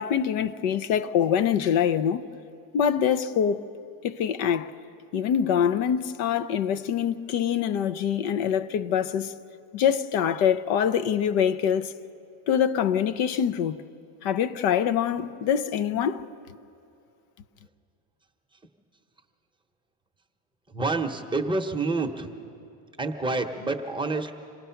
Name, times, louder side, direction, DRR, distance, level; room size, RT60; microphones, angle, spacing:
voice 1, 0.0-2.3 2.7-3.6 4.0-4.7 5.1-9.3 9.7-11.9 12.5-13.8 14.2-16.3, left 8 dB, 70° left, 0.8 m, -24 dB
voice 2, 20.7-22.3 23.0-24.3, right 3 dB, 10° right, 0.9 m, -28 dB
26.5 x 18.5 x 5.8 m
cardioid pair, 135°, 48 cm